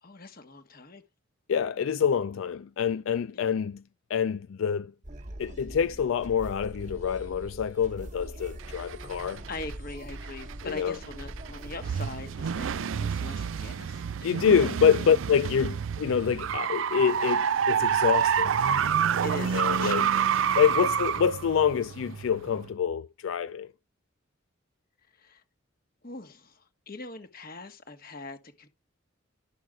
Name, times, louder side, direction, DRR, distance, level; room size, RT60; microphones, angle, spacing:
voice 1, 0.0-1.0 3.3-3.5 9.2-14.1 14.6-14.7 19.0-20.4 20.7-20.9 25.1-25.4 26.0-28.7, left 2 dB, 45° left, 1.4 m, -42 dB
voice 2, 1.5-3.8 4.1-4.9 5.4-9.4 10.6-11.0 14.2-18.6 19.5-20.1 20.6-23.7, left 7 dB, 80° left, 0.4 m, -26 dB
sound 1, 5.0-12.8, right 1 dB, 35° right, 1.1 m, -43 dB
sound 2, 8.6-9.7 10.1-22.7, right 8 dB, 75° right, 0.4 m, -28 dB
11.5 x 6.4 x 3.6 m
head